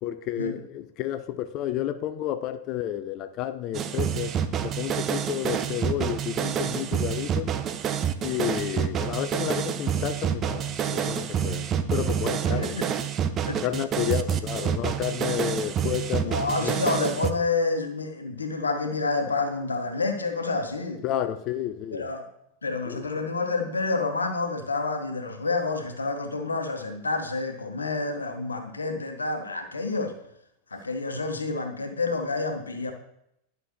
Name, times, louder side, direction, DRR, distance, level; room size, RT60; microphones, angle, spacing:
voice 1, 0.0-4.3 4.6-7.5 8.2-12.8 13.6-16.7 21.0-22.1 22.9-23.1, left 12 dB, 40° left, 0.4 m, -31 dB
sound 1, 3.7-17.3, right 9 dB, 30° right, 0.5 m, -28 dB
voice 2, 12.5-12.9 13.5-13.6 16.2-21.0 21.9-22.2 22.6-30.2 30.7-32.9, left 3 dB, 75° left, 1.0 m, -28 dB
11.0 x 5.8 x 3.1 m
figure-of-eight pair, 90°, 0 cm